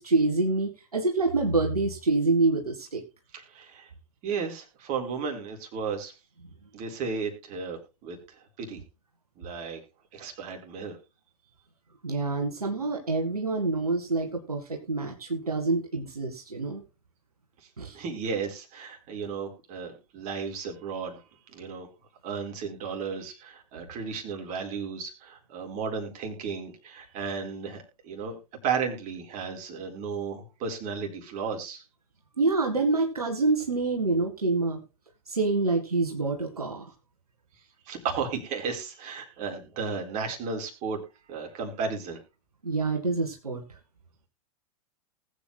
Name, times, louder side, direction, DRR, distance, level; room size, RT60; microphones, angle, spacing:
voice 1, 0.0-3.0 12.0-16.8 17.8-18.0 32.4-34.8 35.3-36.9 42.6-43.6, right 3 dB, 85° right, 2 dB, 2.0 m, -26 dB
voice 2, 3.3-3.9 4.2-6.1 6.7-8.8 9.4-9.8 10.1-11.0 17.9-21.2 21.5-21.9 22.2-28.4 28.6-31.8 37.9-41.0 41.3-42.2, right 5 dB, 40° right, 4 dB, 4.3 m, -34 dB
20.0 x 8.4 x 2.2 m, 0.28 s
figure-of-eight pair, 100°, 19 cm